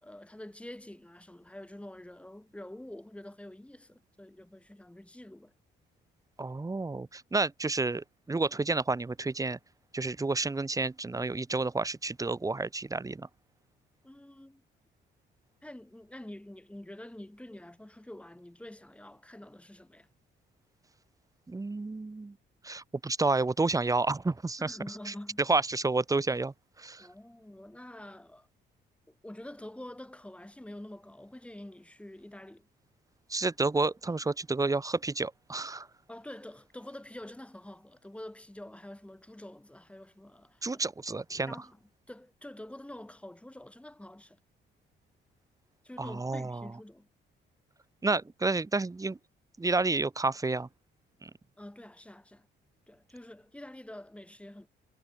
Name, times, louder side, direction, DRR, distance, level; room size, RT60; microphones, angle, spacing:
voice 1, 0.0-5.5 14.0-14.6 15.6-20.1 24.6-25.4 27.0-28.5 29.1-32.7 36.1-40.8 41.5-41.8 42.1-44.4 45.8-47.1 51.6-52.5 52.9-54.7, left 1 dB, 5° left, 2.4 m, -47 dB
voice 2, 6.4-9.6 9.9-13.3 21.5-22.3 22.6-24.8 25.1-25.2 25.5-27.1 33.3-35.9 40.6-41.5 46.0-46.7 48.0-49.2 49.6-50.7 51.2-51.3, right 3 dB, 15° right, 1.0 m, -30 dB
cardioid pair, 90°, 20 cm